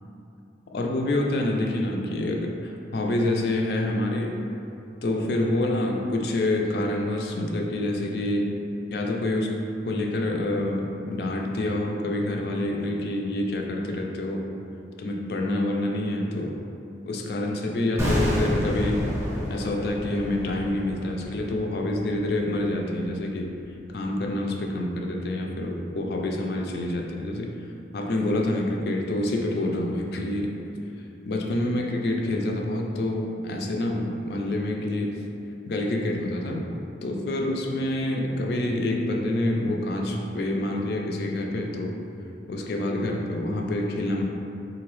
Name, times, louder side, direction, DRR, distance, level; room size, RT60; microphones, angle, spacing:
voice 1, 0.7-4.4 5.0-8.5 8.9-9.6 9.9-14.4 15.0-16.6 17.1-19.1 19.5-23.5 23.9-27.5 27.9-30.6 31.2-35.2 35.7-36.6 37.0-42.0 42.5-44.2, left 1 dB, 55° left, 1 dB, 0.4 m, -27 dB
sound 1, 18.0-23.0 23.3-23.4, equal, 15° right, 0.6 m, -29 dB
3.8 x 2.7 x 3.0 m, 2.8 s
head